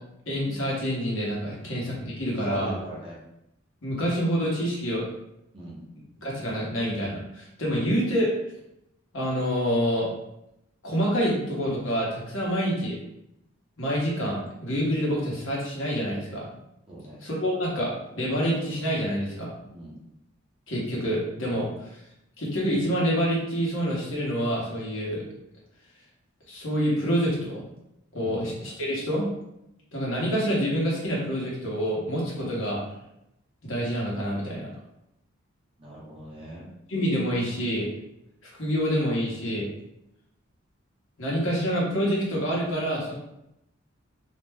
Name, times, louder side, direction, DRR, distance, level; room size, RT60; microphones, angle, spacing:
voice 1, 0.3-2.7 3.8-5.0 6.2-8.3 9.1-10.1 10.8-13.0 13.8-16.5 17.2-19.5 20.7-21.9 22.4-25.2 26.5-27.6 28.1-29.3 29.9-32.8 33.6-34.7 36.9-37.9 38.4-39.7 41.2-43.1, equal, 65° left, -4 dB, 1.0 m, -27 dB
voice 2, 2.4-3.2 5.5-5.8 16.9-17.2 19.7-20.0 28.2-28.4 35.8-36.7, right 1 dB, 25° right, -6 dB, 0.7 m, -40 dB
2.5 x 2.1 x 3.3 m, 0.84 s
head